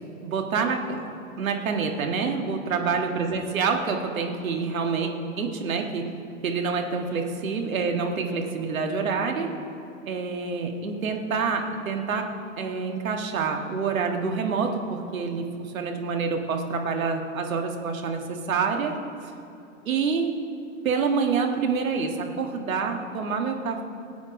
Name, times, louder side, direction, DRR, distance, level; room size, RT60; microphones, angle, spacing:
voice 1, 0.2-1.0 1.4-5.1 5.4-6.0 6.4-9.5 10.1-12.3 12.6-18.9 19.2-19.3 19.8-20.3 20.8-23.8, right 5 dB, 75° right, 3 dB, 1.8 m, -27 dB
18.5 x 8.2 x 5.3 m, 2.6 s
hypercardioid pair, 110°, 41 cm